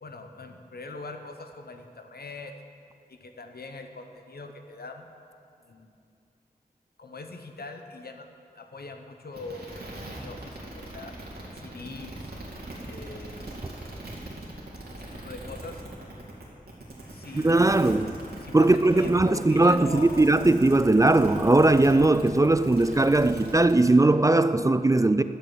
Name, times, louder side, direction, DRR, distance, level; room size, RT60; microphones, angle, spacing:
voice 1, 0.0-2.5 3.1-5.1 5.6-5.9 7.0-8.3 8.5-11.2 11.5-12.3 12.8-13.5 14.9-15.8 17.1-20.4, left 3 dB, 75° left, 1.0 m, -42 dB
sound 1, 9.3-24.0, right 1 dB, 85° right, 2.5 m, -40 dB
voice 2, 17.3-18.1 18.5-25.2, right 2 dB, 20° right, 0.4 m, -20 dB
12.5 x 6.9 x 7.8 m
wide cardioid pair, 65°, 16 cm